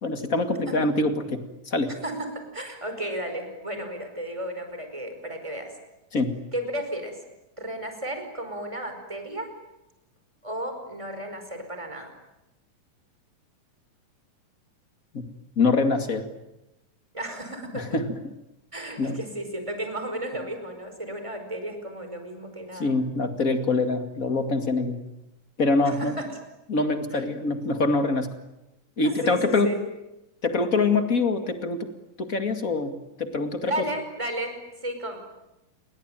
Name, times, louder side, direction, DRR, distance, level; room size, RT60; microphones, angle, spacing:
voice 1, 0.0-1.9 6.1-6.3 15.1-15.2 15.6-16.3 17.7-18.3 19.0-19.2 22.8-25.0 25.6-26.2 26.7-28.3 29.0-29.7 30.4-31.9 32.2-33.8, left 3 dB, 30° left, 7 dB, 2.1 m, -25 dB
voice 2, 2.0-5.7 6.5-7.2 7.6-9.5 10.4-12.1 17.1-17.9 18.7-22.9 25.8-26.4 27.1-27.2 29.0-29.8 33.6-35.2, right 1 dB, 10° right, 6 dB, 4.9 m, -33 dB
28.5 x 22.5 x 9.1 m, 0.92 s
omnidirectional pair, 4.0 m